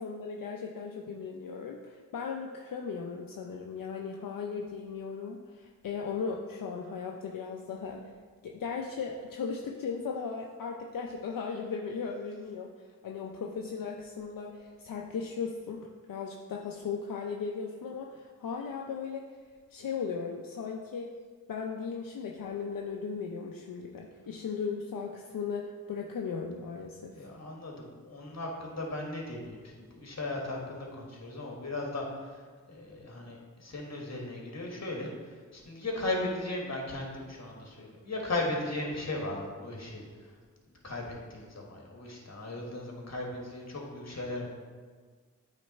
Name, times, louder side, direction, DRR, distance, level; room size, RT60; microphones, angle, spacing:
voice 1, 0.0-8.1 8.4-15.8 16.1-19.2 19.7-21.1 21.5-27.3, left 5 dB, 80° left, 1 dB, 0.6 m, -37 dB
voice 2, 27.1-40.3 40.8-44.5, left 2 dB, 50° left, -1 dB, 1.6 m, -37 dB
8.7 x 3.3 x 4.2 m, 1.5 s
cardioid pair, 55°, 33 cm